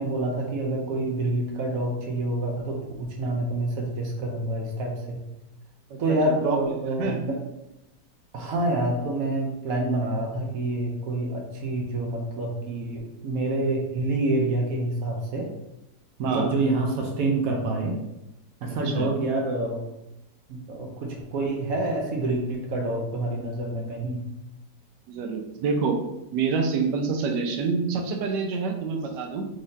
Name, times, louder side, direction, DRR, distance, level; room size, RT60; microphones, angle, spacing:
voice 1, 0.0-5.2 6.0-7.4 8.3-15.5 16.2-18.0 18.6-19.8 20.5-24.2, right 2 dB, 65° right, 1 dB, 0.9 m, -27 dB
voice 2, 5.9-7.2 16.2-16.5 18.8-19.1 25.1-26.0 26.3-29.5, right 5 dB, 85° right, 3 dB, 1.2 m, -27 dB
4.0 x 3.1 x 2.6 m, 0.91 s
omnidirectional pair, 1.8 m